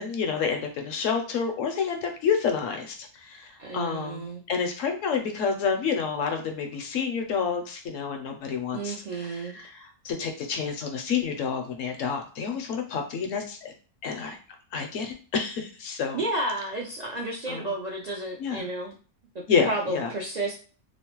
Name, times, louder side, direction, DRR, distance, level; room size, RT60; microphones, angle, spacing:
voice 1, 0.0-3.0 3.2-13.7 14.0-14.4 14.7-16.2 17.5-17.7 18.4-18.7 19.5-20.1, left 6 dB, 70° left, 5 dB, 0.9 m, -29 dB
voice 2, 3.6-4.4 8.7-9.6 16.1-18.9 19.7-20.5, right 2 dB, 65° right, -2 dB, 0.4 m, -31 dB
2.9 x 2.0 x 2.9 m, 0.38 s
omnidirectional pair, 1.4 m